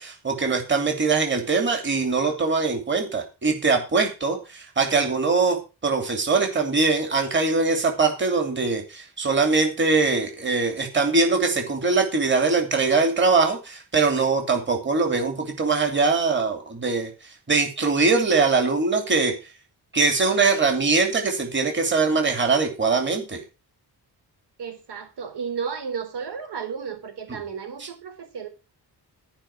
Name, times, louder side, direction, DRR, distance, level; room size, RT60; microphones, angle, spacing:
voice 1, 0.0-17.1 17.5-19.3 19.9-23.4 27.8-27.9, right 4 dB, 30° right, 4 dB, 2.7 m, -22 dB
voice 2, 24.6-28.5, right 6 dB, 80° right, 6 dB, 3.8 m, -33 dB
14.0 x 5.5 x 7.2 m, 0.30 s
wide cardioid pair, 175°, 39 cm